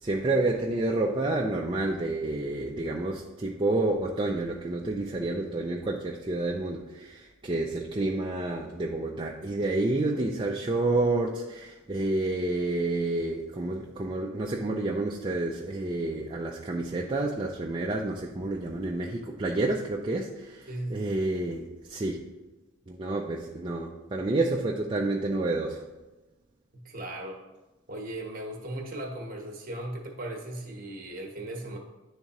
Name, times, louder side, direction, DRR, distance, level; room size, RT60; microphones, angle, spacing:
voice 1, 0.0-22.2 22.9-25.8, right 2 dB, 25° right, -1 dB, 0.3 m, -29 dB
voice 2, 20.7-21.1 26.7-27.4 27.9-31.8, right 1 dB, 40° right, 1 dB, 1.0 m, -37 dB
10.5 x 3.6 x 2.9 m, 1.1 s
head